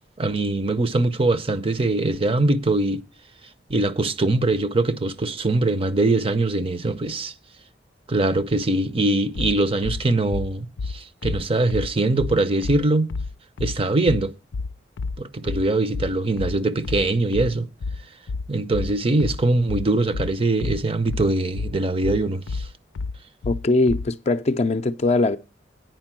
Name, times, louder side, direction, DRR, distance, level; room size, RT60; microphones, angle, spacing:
voice 1, 0.2-3.0 3.7-7.3 8.1-13.1 13.6-14.3 15.2-17.7 18.5-22.6, right 2 dB, 30° right, 0.6 m, -22 dB
sound 1, 9.3-24.1, left 4 dB, 90° left, 0.4 m, -30 dB
voice 2, 23.5-25.4, left 2 dB, 35° left, 0.5 m, -21 dB
9.0 x 5.2 x 7.4 m
head